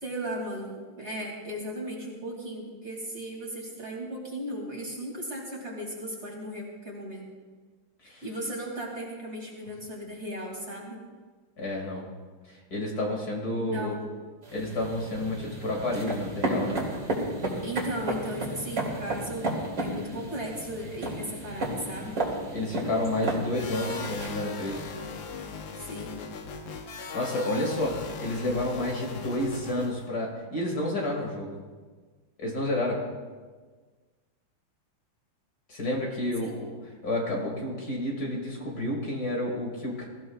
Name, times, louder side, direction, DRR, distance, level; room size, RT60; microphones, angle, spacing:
voice 1, 0.0-7.3 8.0-11.0 13.5-14.2 17.6-19.5 19.8-22.2 25.8-26.2 36.4-36.5, right 1 dB, 30° right, -2 dB, 2.8 m, -36 dB
voice 2, 11.6-12.0 12.5-13.9 14.5-16.9 22.5-24.9 26.9-31.6 32.4-33.0 35.7-36.7 37.0-40.1, left 1 dB, 50° left, -1 dB, 2.6 m, -30 dB
sound 1, 14.4-24.3, right 1 dB, 50° right, 3.2 m, -33 dB
sound 2, 23.5-30.1, left 5 dB, 70° left, 1.7 m, -38 dB
21.5 x 15.0 x 2.4 m, 1.4 s
omnidirectional pair, 2.2 m